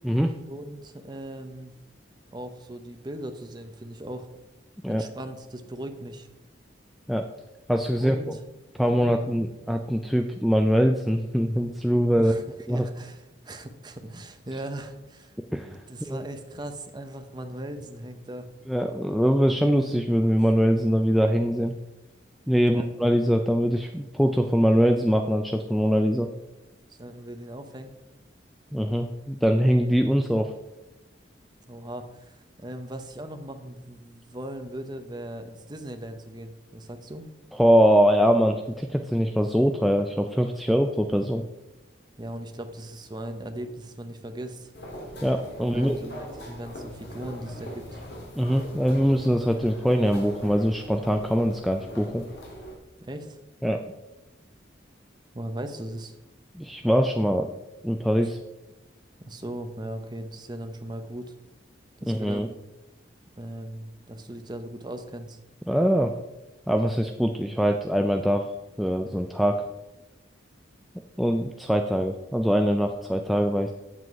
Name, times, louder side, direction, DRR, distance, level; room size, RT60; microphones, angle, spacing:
voice 1, 0.5-1.7 2.3-4.3 4.9-6.3 8.0-8.4 8.9-9.4 12.2-12.4 12.7-15.3 15.9-18.5 22.6-22.9 26.9-27.9 31.7-37.3 42.2-44.7 45.7-47.9 53.0-53.4 55.3-56.1 59.2-61.3 62.0-62.5 63.4-65.4, right 1 dB, 25° right, 7 dB, 0.8 m, -38 dB
voice 2, 7.7-8.2 8.8-12.3 12.7-12.9 15.5-16.2 18.7-21.7 22.5-26.3 28.7-30.5 37.5-41.4 45.2-46.0 48.4-52.2 53.6-53.8 56.5-57.5 57.8-58.4 62.1-62.5 65.7-66.1 66.7-68.5 68.8-69.6 71.2-73.7, equal, ahead, 3 dB, 0.3 m, -23 dB
sound 1, 44.7-52.8, equal, 60° left, 2.3 m, -41 dB
7.9 x 7.6 x 4.6 m, 1.0 s
head